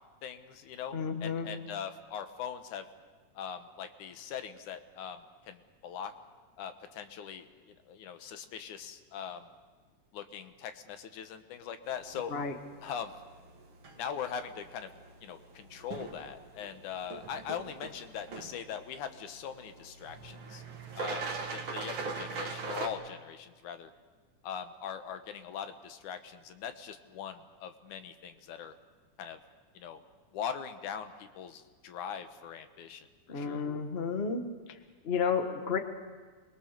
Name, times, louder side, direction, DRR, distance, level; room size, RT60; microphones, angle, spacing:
voice 1, 0.2-2.9 3.4-6.1 6.6-9.5 10.1-12.3 12.8-13.2 14.0-14.9 15.2-20.6 21.0-23.9 24.4-28.7 29.2-29.4 29.7-30.0 30.3-33.6, left 8 dB, 75° left, 8 dB, 2.5 m, -41 dB
voice 2, 0.9-1.5 12.3-12.6 33.3-34.4 34.7-34.8 35.0-35.8, left 6 dB, 40° left, 6 dB, 0.8 m, -31 dB
sound 1, 11.9-22.9, right 4 dB, 45° right, 2.2 m, -42 dB
27.0 x 22.0 x 6.6 m, 1.4 s
omnidirectional pair, 3.6 m